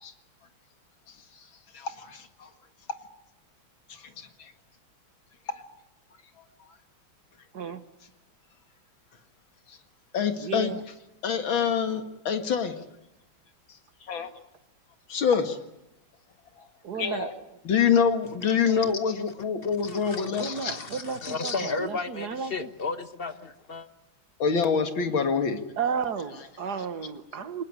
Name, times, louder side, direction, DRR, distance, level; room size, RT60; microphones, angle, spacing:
voice 1, 1.7-2.5 3.9-4.5 9.7-9.8 10.1-10.7 11.2-12.8 14.1-14.3 15.1-15.6 16.6-16.7 17.0-17.3 17.6-20.8 21.2-21.5 24.4-25.6, left 6 dB, 70° left, 2.6 m, -26 dB
voice 2, 10.4-10.8 16.8-17.3 20.3-22.7 25.8-27.6, right 6 dB, 55° right, 1.8 m, -33 dB
voice 3, 19.8-23.9, left 4 dB, 35° left, 1.0 m, -34 dB
23.5 x 20.5 x 9.8 m
omnidirectional pair, 2.3 m